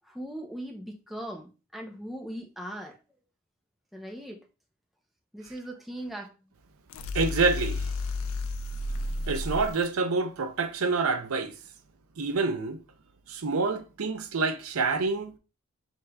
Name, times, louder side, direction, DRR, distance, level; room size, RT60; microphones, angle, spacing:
voice 1, 0.0-3.0 3.9-4.4 5.3-6.3, right 1 dB, ahead, 0.5 m, -39 dB
sound 1, 6.9-9.9, left 2 dB, 70° left, 0.4 m, -32 dB
voice 2, 7.1-7.9 9.3-11.6 12.2-12.8 13.3-15.3, right 4 dB, 85° right, 0.6 m, -27 dB
6.2 x 3.2 x 2.3 m
head